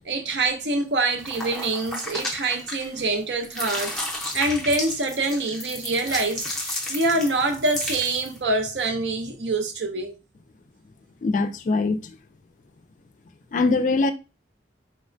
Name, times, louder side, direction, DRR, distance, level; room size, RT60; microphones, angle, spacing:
voice 1, 0.0-4.0 4.3-10.1, right 2 dB, 75° right, 0.6 m, -25 dB
sound 1, 1.2-3.1 3.4-8.4, left 1 dB, 5° left, 0.6 m, -33 dB
voice 2, 11.2-12.2 13.5-14.1, left 3 dB, 45° left, 0.3 m, -22 dB
4.0 x 2.1 x 2.5 m
head